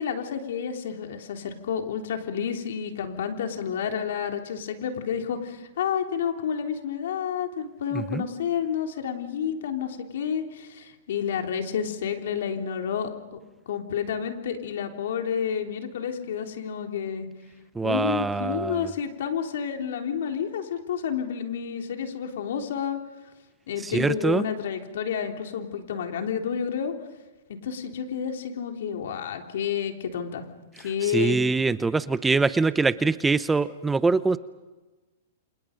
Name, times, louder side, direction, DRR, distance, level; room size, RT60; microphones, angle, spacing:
voice 1, 0.0-13.4 13.7-17.3 17.8-23.0 23.7-26.9 27.5-30.5 30.8-31.4, left 7 dB, 70° left, 3 dB, 3.5 m, -30 dB
voice 2, 17.8-18.9 23.8-24.4 31.0-34.4, right 4 dB, 10° right, 14 dB, 0.8 m, -24 dB
30.0 x 27.0 x 5.3 m, 1.2 s
hypercardioid pair, 130°, 0 cm